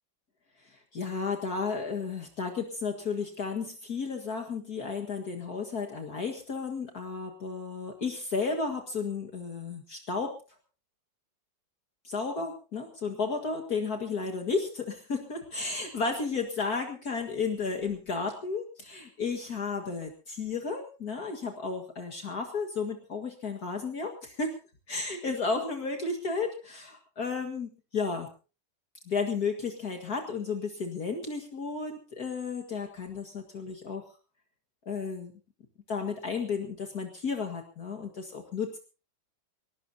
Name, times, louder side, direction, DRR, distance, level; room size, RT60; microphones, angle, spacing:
voice 1, 0.7-10.3 12.0-24.5 24.9-28.3 29.1-34.0 34.9-35.3 35.9-38.8, left 4 dB, 55° left, 3 dB, 2.3 m, -33 dB
22.0 x 18.5 x 2.7 m, 0.34 s
omnidirectional pair, 2.0 m